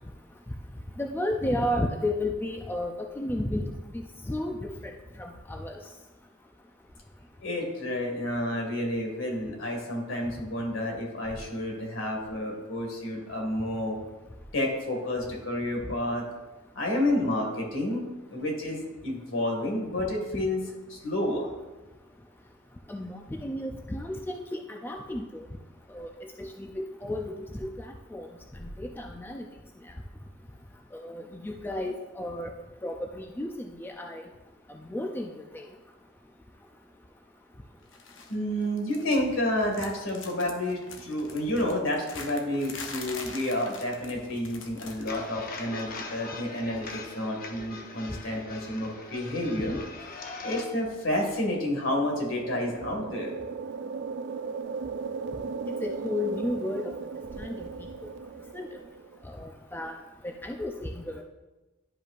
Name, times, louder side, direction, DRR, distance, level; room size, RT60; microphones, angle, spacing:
voice 1, 1.0-3.6 3.9-5.8 20.3-20.4 22.9-25.5 25.9-28.3 28.6-29.4 30.9-32.5 32.8-34.2 34.7-35.6 55.8-56.9 57.4-57.9 58.5-58.7 59.2-59.9 60.2-61.2, left 1 dB, 10° left, 3 dB, 0.4 m, -33 dB
voice 2, 7.4-14.0 14.5-16.2 16.7-20.6 20.9-21.5 38.3-49.7 50.4-53.4, left 1 dB, 90° left, 0 dB, 2.1 m, -30 dB
sound 1, 37.9-38.4 38.6-39.4 39.7-45.3 45.5-45.8 46.9-47.0, left 4 dB, 70° left, 0.9 m, -44 dB
sound 2, 45.1-50.7, left 3 dB, 50° left, 0.8 m, -41 dB
sound 3, 51.6-59.2, right 5 dB, 60° right, 0.3 m, -37 dB
11.0 x 5.2 x 2.5 m, 1.1 s
head